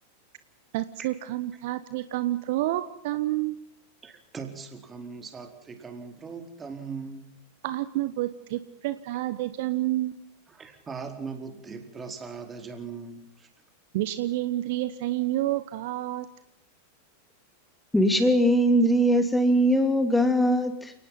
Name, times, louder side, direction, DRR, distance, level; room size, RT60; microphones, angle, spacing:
voice 1, 0.7-3.6 7.6-10.2 13.9-16.3, right 15 dB, 50° right, 13 dB, 1.2 m, -29 dB
voice 2, 4.0-7.3 10.5-13.5, right 5 dB, 20° right, 6 dB, 4.4 m, -40 dB
voice 3, 17.9-20.9, equal, 5° left, 8 dB, 2.6 m, -21 dB
29.5 x 19.5 x 5.8 m, 0.71 s
figure-of-eight pair, 90°, 0 cm